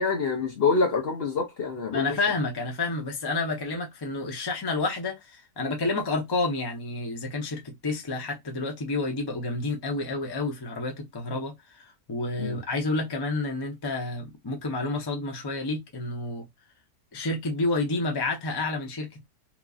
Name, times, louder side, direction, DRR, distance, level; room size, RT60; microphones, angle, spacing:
voice 1, 0.0-2.1 12.4-12.6, left 4 dB, 55° left, 0.8 m, -26 dB
voice 2, 1.9-16.5 17.1-19.2, left 2 dB, 30° left, 0.5 m, -30 dB
3.0 x 2.5 x 2.3 m
omnidirectional pair, 1.5 m